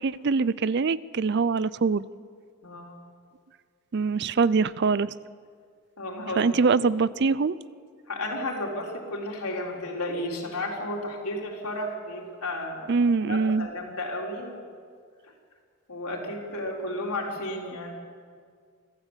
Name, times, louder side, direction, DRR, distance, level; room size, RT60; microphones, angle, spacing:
voice 1, 0.0-2.0 3.9-5.1 6.4-7.6 12.9-13.7, right 4 dB, 50° right, 19 dB, 0.4 m, -23 dB
voice 2, 2.6-3.0 6.0-6.8 8.1-12.9 13.2-14.6 15.2-15.3 15.9-17.9, left 1 dB, 90° left, -1 dB, 4.2 m, -33 dB
25.5 x 14.5 x 8.2 m, 2.1 s
head